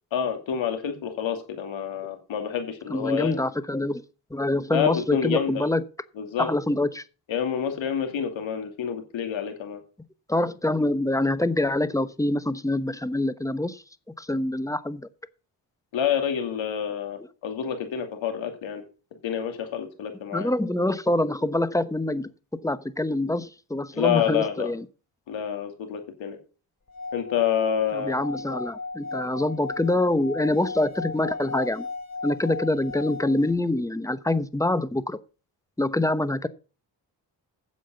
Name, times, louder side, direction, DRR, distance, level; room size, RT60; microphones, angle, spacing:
voice 1, 0.1-3.4 4.7-5.7 6.2-6.5 7.3-9.8 15.9-18.8 19.2-20.5 23.9-24.7 25.3-26.4 27.1-28.2, left 8 dB, 85° left, 2.7 m, -28 dB
voice 2, 2.9-4.0 4.3-5.8 6.4-7.0 10.3-13.8 14.2-15.0 20.3-22.3 22.6-24.8 27.9-31.9 32.2-35.2 35.8-36.5, left 1 dB, 5° left, 1.0 m, -25 dB
Singing / Glass, 26.9-33.5, left 3 dB, 35° left, 2.8 m, -36 dB
8.8 x 7.6 x 7.0 m
cardioid pair, 60°, 45 cm